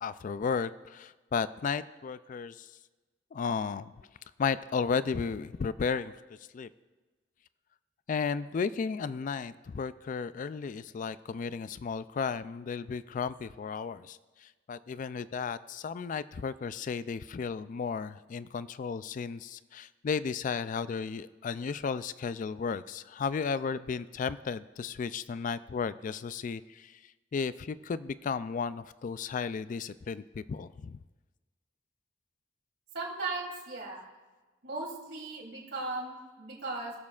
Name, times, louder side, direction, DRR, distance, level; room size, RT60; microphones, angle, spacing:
voice 1, 0.0-2.7 3.3-3.9 4.4-6.1 6.5-6.7 8.1-27.0 27.3-31.0, left 5 dB, 45° left, 15 dB, 0.3 m, -34 dB
voice 2, 32.9-34.1 34.6-36.9, right 3 dB, 70° right, -4 dB, 3.3 m, -37 dB
22.0 x 7.4 x 2.4 m, 1.3 s
head